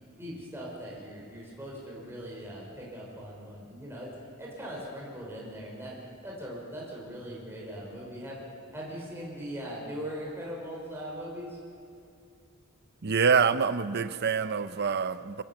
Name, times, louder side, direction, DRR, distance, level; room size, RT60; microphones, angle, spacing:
voice 1, 0.2-4.1 4.4-6.0 6.2-8.4 8.7-11.6, equal, 10° right, -4 dB, 5.7 m, -40 dB
voice 2, 13.0-15.4, right 6 dB, 50° right, 13 dB, 0.7 m, -26 dB
24.5 x 17.5 x 7.4 m, 2.5 s
head